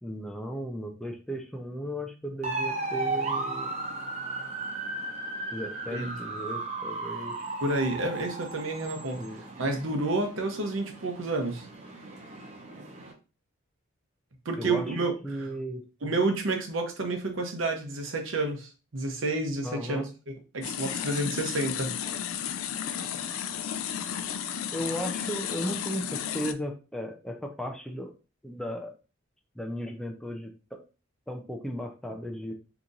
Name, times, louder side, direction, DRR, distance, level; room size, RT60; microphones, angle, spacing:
voice 1, 0.0-3.7 5.5-7.5 9.2-9.4 14.6-15.0 15.2-15.8 19.6-20.0 24.7-28.1 28.4-28.9 29.6-30.8 31.3-32.5, equal, 5° left, 0.4 m, -36 dB
sound 1, 2.4-13.1, right 3 dB, 35° right, 0.7 m, -36 dB
voice 2, 7.6-9.2 9.6-11.7 14.4-15.5 16.0-20.0 20.5-21.9, right 2 dB, 70° right, 0.8 m, -30 dB
sound 2, 20.6-26.5, left 8 dB, 90° left, 0.4 m, -33 dB
2.9 x 2.5 x 3.8 m
head